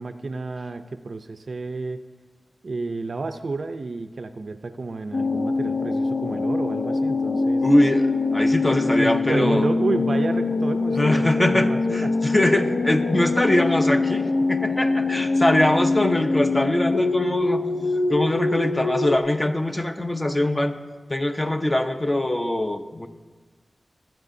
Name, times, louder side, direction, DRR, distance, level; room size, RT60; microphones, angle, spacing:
voice 1, 0.0-2.0 2.6-7.7 8.7-12.1, right 3 dB, 60° right, 8 dB, 0.5 m, -30 dB
sound 1, 5.1-19.2, left 3 dB, 65° left, 0.7 m, -23 dB
voice 2, 7.6-9.7 10.9-17.6 18.1-20.8 21.1-23.1, left 1 dB, 20° left, 6 dB, 0.7 m, -22 dB
25.0 x 9.0 x 2.7 m, 1.4 s
wide cardioid pair, 100°, 0 cm